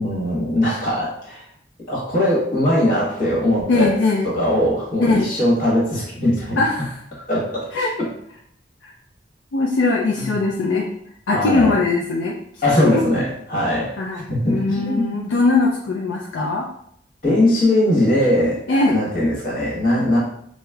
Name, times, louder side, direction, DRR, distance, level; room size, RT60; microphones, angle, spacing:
voice 1, 0.0-1.4 1.9-3.9 4.2-6.6 7.3-7.7 8.0-8.1 10.2-10.3 11.3-11.7 12.6-15.1 17.2-20.2, left 1 dB, 45° left, -5 dB, 1.2 m, -20 dB
voice 2, 3.7-4.3 5.0-5.4 6.6-7.0 7.7-7.9 8.8-8.9 9.5-10.9 11.3-12.4 12.8-13.0 14.0-16.7 18.7-19.0, left 3 dB, 75° left, -2 dB, 0.4 m, -20 dB
4.7 x 2.0 x 2.3 m, 0.68 s
head